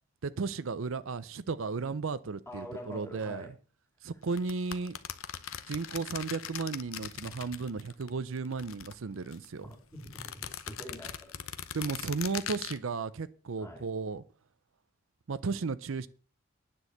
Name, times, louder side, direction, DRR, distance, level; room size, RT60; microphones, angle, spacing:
voice 1, 0.2-3.5 4.0-5.0 5.7-9.7 11.7-14.2 15.3-16.1, right 4 dB, 70° right, 0.5 m, -34 dB
voice 2, 2.5-3.5 9.6-11.3 11.7-11.9 13.6-13.8, equal, 10° left, 2.6 m, -45 dB
sound 1, 4.3-8.1 8.4-9.5 10.0-12.8, left 9 dB, 75° left, 0.8 m, -41 dB
9.9 x 6.3 x 7.8 m
head